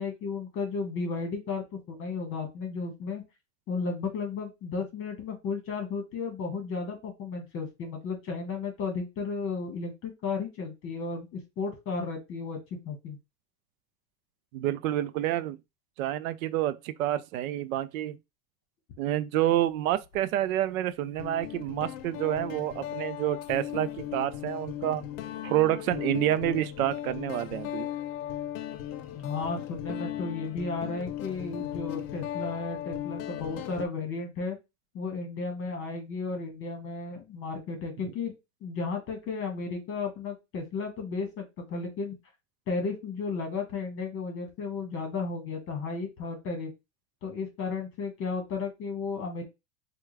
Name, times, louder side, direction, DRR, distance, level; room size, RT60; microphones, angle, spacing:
voice 1, 0.0-3.2 3.7-12.6 12.8-13.2 29.1-34.6 34.9-38.3 38.6-42.1 42.7-46.7 47.2-49.4, left 4 dB, 30° left, 1.3 m, -34 dB
voice 2, 14.5-15.6 16.0-18.2 19.0-25.0 25.4-27.9 38.0-38.1, right 13 dB, 70° right, 0.5 m, -28 dB
Guitar, 19.9-20.2 21.2-33.9, left 12 dB, 65° left, 0.7 m, -37 dB
4.6 x 2.3 x 3.2 m
supercardioid pair, 150°, 43 cm